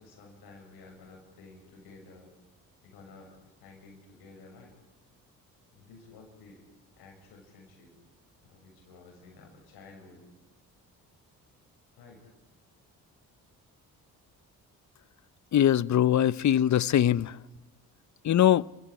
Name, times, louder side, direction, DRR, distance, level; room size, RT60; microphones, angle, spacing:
voice 1, 0.0-2.3 2.8-4.7 5.7-6.6 7.0-8.0 8.4-10.3 11.9-12.3, left 3 dB, 85° left, 7.3 m, -52 dB
voice 2, 15.5-17.3 18.2-18.6, left 11 dB, 50° left, 0.7 m, -22 dB
29.0 x 15.5 x 9.7 m
supercardioid pair, 60°, 37 cm